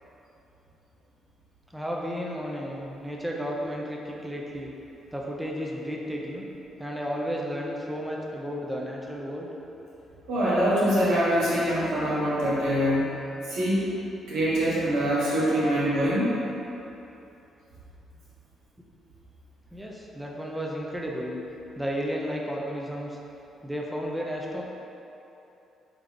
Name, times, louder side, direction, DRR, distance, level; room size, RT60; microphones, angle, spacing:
voice 1, 1.7-4.7 5.1-6.4 6.8-9.5 19.7-21.4 21.8-23.2 23.6-24.6, equal, 5° right, -2 dB, 0.5 m, -33 dB
voice 2, 10.3-13.1 13.5-13.9 14.3-16.3, equal, 90° right, -9 dB, 1.3 m, -24 dB
3.7 x 3.3 x 3.3 m, 3.0 s
cardioid pair, 90°, 0 cm